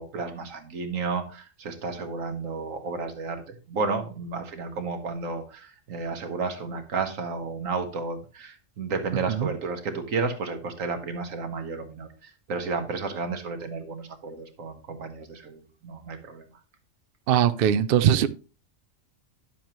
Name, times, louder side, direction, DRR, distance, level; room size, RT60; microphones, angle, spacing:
voice 1, 0.0-16.5, right 4 dB, 85° right, 6 dB, 1.6 m, -32 dB
voice 2, 17.3-18.3, right 9 dB, 60° right, 13 dB, 0.6 m, -21 dB
10.5 x 7.3 x 3.0 m, 0.34 s
omnidirectional pair, 1.3 m